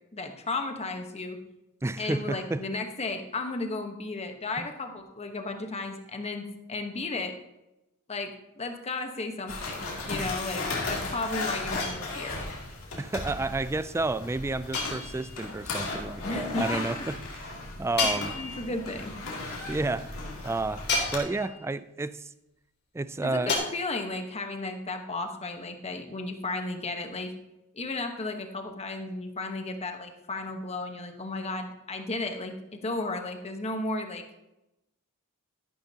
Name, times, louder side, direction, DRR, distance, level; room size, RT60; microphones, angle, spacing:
voice 1, 0.1-1.4 2.0-7.3 8.1-12.4 16.2-16.8 18.0-19.1 21.4-21.5 23.2-27.3 27.7-34.2, left 2 dB, 30° left, 1.1 m, -34 dB
voice 2, 1.8-2.6 4.6-4.7 13.0-18.3 19.7-20.2 20.4-20.9 21.1-22.3 22.9-23.6, right 2 dB, 10° right, 0.3 m, -31 dB
sound 1, 9.5-21.2, left 3 dB, 75° left, 2.5 m, -36 dB
sound 2, 11.8-12.5 14.7-15.5 18.0-18.9 20.9-21.7 23.5-23.6, left 3 dB, 55° left, 3.2 m, -32 dB
12.5 x 11.5 x 2.8 m
head